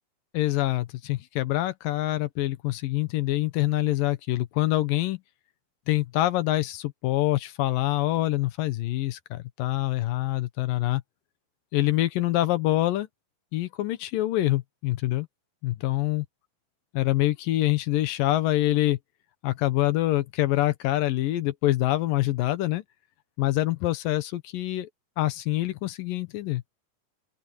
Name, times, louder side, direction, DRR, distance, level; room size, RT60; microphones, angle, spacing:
voice 1, 0.3-5.2 5.9-11.0 11.7-13.1 13.5-15.3 15.6-16.3 16.9-19.0 19.4-22.8 23.4-24.9 25.2-26.6, left 16 dB, 80° left, 2.7 m, -25 dB
open air
omnidirectional pair, 4.0 m